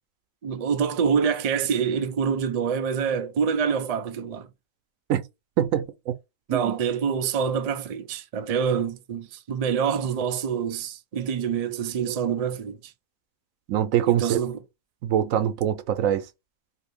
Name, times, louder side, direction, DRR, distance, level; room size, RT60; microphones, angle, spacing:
voice 1, 0.4-4.5 6.5-12.9 14.1-14.6, right 7 dB, 65° right, 0.3 m, -26 dB
voice 2, 5.6-6.1 6.5-6.8 13.7-14.4 15.0-16.2, right 10 dB, 85° right, 1.0 m, -24 dB
2.7 x 2.6 x 3.5 m
omnidirectional pair, 1.4 m